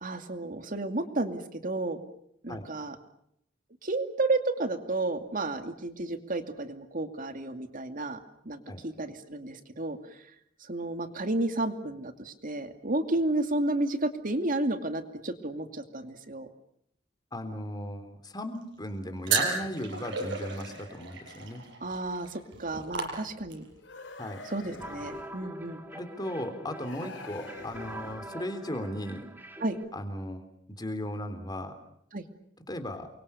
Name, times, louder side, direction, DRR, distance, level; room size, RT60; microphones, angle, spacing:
voice 1, 0.0-2.0 2.4-3.0 3.8-8.2 8.4-10.0 10.6-16.5 21.8-23.6 24.5-25.8 29.6-29.8 32.1-32.2, right 2 dB, 45° right, 7 dB, 2.5 m, -32 dB
voice 2, 17.3-21.6 24.2-24.4 25.9-29.3 29.9-31.7 32.7-33.1, left 1 dB, 20° left, 8 dB, 3.6 m, -36 dB
sound 1, 19.3-23.7, right 4 dB, 70° right, 6.3 m, -33 dB
sound 2, 23.8-25.4 26.8-28.4, left 3 dB, 70° left, 4.5 m, -46 dB
sound 3, 24.8-29.9, right 1 dB, 10° right, 3.0 m, -44 dB
29.5 x 24.0 x 7.0 m, 0.73 s
head